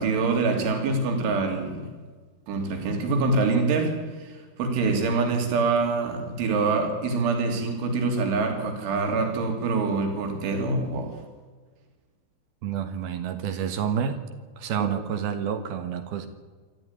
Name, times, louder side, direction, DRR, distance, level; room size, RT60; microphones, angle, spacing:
voice 1, 0.0-1.9 2.5-11.2 14.8-14.9, right 3 dB, 85° right, 4 dB, 5.5 m, -25 dB
voice 2, 12.6-14.2 14.6-16.3, right 8 dB, 65° right, 9 dB, 2.9 m, -29 dB
26.5 x 13.5 x 9.7 m, 1.4 s
omnidirectional pair, 5.3 m